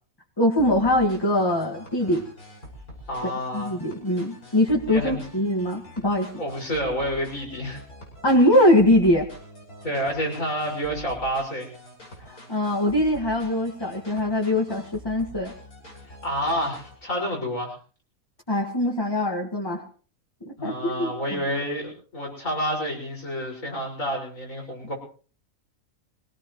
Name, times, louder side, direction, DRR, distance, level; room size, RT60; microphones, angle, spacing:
voice 1, 0.4-2.2 3.5-6.3 8.2-9.3 12.2-15.5 18.5-19.8 20.4-21.4, left 1 dB, 15° left, 1 dB, 1.8 m, -22 dB
sound 1, 0.6-17.0, equal, 90° left, 6.3 m, -45 dB
voice 2, 3.1-3.7 4.9-5.2 6.4-7.8 9.8-11.7 16.1-17.7 20.6-24.9, equal, 65° left, 0 dB, 6.1 m, -29 dB
23.5 x 17.5 x 3.1 m, 0.40 s
omnidirectional pair, 1.5 m